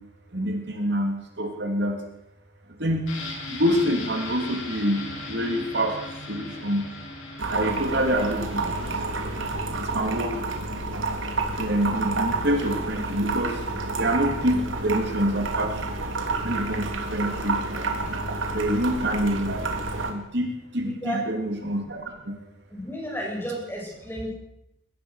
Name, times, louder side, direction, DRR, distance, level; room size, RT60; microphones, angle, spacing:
voice 1, 0.3-2.0 2.8-3.0 3.5-5.9 6.3-6.8 7.5-8.8 9.8-10.3 11.6-13.5 14.0-15.8 16.4-17.8 18.5-19.6 20.0-20.5 20.7-22.3, equal, 55° right, 3 dB, 3.3 m, -26 dB
sound 1, 3.1-12.7 13.0-13.1, left 2 dB, 80° left, 7.4 m, -40 dB
sound 2, 7.4-20.1, right 3 dB, 75° right, 3.4 m, -29 dB
voice 2, 20.8-21.2 22.7-24.3, equal, 10° left, -1 dB, 7.8 m, -32 dB
22.5 x 19.0 x 6.6 m, 0.84 s
head